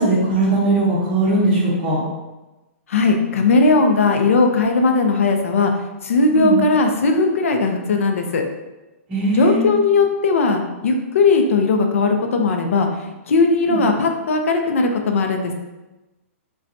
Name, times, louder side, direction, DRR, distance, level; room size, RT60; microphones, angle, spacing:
voice 1, 0.0-2.0 6.3-6.6 9.1-9.6 13.7-13.8, right 2 dB, 15° right, -10 dB, 0.7 m, -19 dB
voice 2, 2.9-5.7 6.0-8.4 9.3-12.9 13.3-15.5, left 3 dB, 65° left, 4 dB, 0.6 m, -18 dB
5.4 x 2.2 x 2.6 m, 1.1 s
hypercardioid pair, 180°, 8 cm